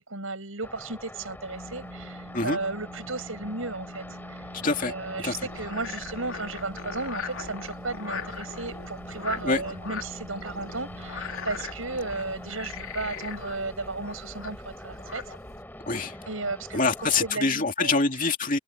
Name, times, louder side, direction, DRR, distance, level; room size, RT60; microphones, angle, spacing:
voice 1, 0.0-4.0 4.3-4.4 4.8-15.3 16.3-18.0, right 3 dB, 75° right, 6.3 m, -34 dB
sound 1, 0.6-17.3, left 1 dB, 10° left, 3.3 m, -44 dB
sound 2, 1.3-13.0, equal, 45° right, 4.4 m, -45 dB
voice 2, 4.5-4.9 5.2-5.4 9.4-9.6 15.9-16.2 16.7-18.6, left 3 dB, 40° left, 2.6 m, -25 dB
Frog, 5.3-15.6, left 5 dB, 75° left, 3.3 m, -40 dB
head